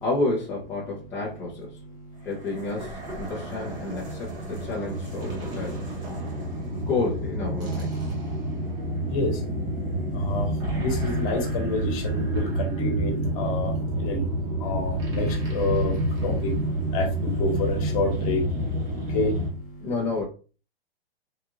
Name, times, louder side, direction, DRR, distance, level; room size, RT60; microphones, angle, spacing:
voice 1, 0.0-1.8 2.2-5.8 6.9-7.9 19.8-20.2, left 3 dB, 10° left, -7 dB, 0.5 m, -30 dB
voice 2, 1.9-2.3 9.0-19.9, left 1 dB, 35° left, 1 dB, 1.2 m, -29 dB
sound 1, 2.3-19.5, right 1 dB, 15° right, 0.9 m, -29 dB
3.7 x 2.4 x 2.9 m, 0.36 s
hypercardioid pair, 155°, 31 cm